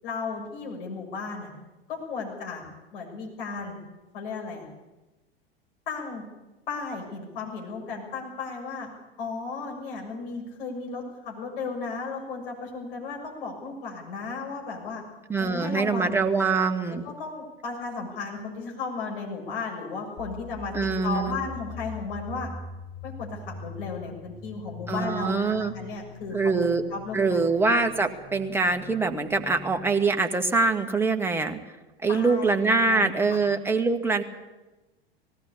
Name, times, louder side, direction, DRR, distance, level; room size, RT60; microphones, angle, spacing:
voice 1, 0.0-1.5 1.9-2.6 2.9-3.8 4.1-4.7 5.9-6.2 6.7-8.9 9.2-15.0 15.4-16.5 17.0-20.7 21.0-22.5 23.0-27.5 32.1-33.4, left 4 dB, 60° left, 0 dB, 6.6 m, -35 dB
voice 2, 15.3-17.0 20.7-21.4 24.9-25.7 26.3-26.8 27.1-31.6 32.0-34.2, right 4 dB, 5° right, 5 dB, 1.6 m, -24 dB
sound 1, 20.2-29.9, left 4 dB, 25° left, 2.4 m, -43 dB
18.5 x 16.5 x 8.6 m, 1.1 s
figure-of-eight pair, 85°, 31 cm